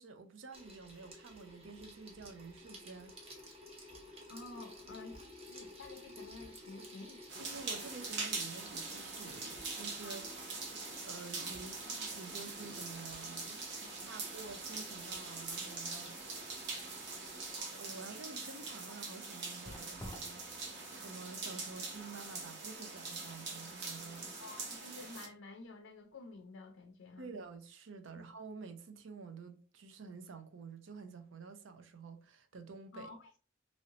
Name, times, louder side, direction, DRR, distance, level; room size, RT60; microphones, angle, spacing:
voice 1, 0.0-3.1 6.8-6.9 7.4-10.3 11.1-13.7 14.0-16.2 16.8-17.3 17.7-24.4 27.2-33.1, right 4 dB, 80° right, 0.6 m, -50 dB
Water tap faucet / Sink (filling or washing), 0.5-17.6, equal, 30° right, 0.9 m, -53 dB
voice 2, 4.3-7.2 10.0-10.3 13.8-14.1 24.4-27.3 32.9-33.4, left 3 dB, 80° left, 0.4 m, -51 dB
sound 1, 7.3-25.3, right 3 dB, 60° right, 0.9 m, -43 dB
sound 2, 19.1-26.3 26.7-26.8, left 1 dB, 15° left, 0.3 m, -56 dB
3.1 x 2.7 x 2.7 m
head